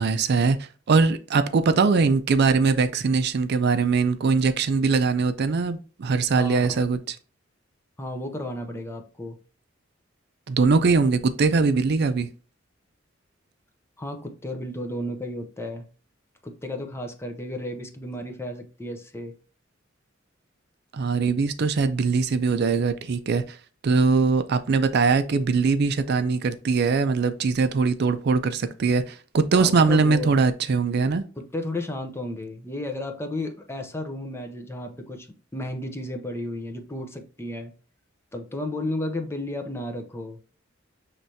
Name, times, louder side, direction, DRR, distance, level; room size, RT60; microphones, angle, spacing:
voice 1, 0.0-7.2 10.5-12.3 20.9-23.6 23.8-31.2, right 4 dB, 55° right, 0.4 m, -21 dB
voice 2, 6.3-6.8 8.0-9.4 14.0-15.9 16.4-19.3 29.6-30.4 31.4-35.3 35.5-37.7 38.3-40.4, left 1 dB, 15° left, 0.6 m, -33 dB
6.0 x 3.2 x 2.7 m
head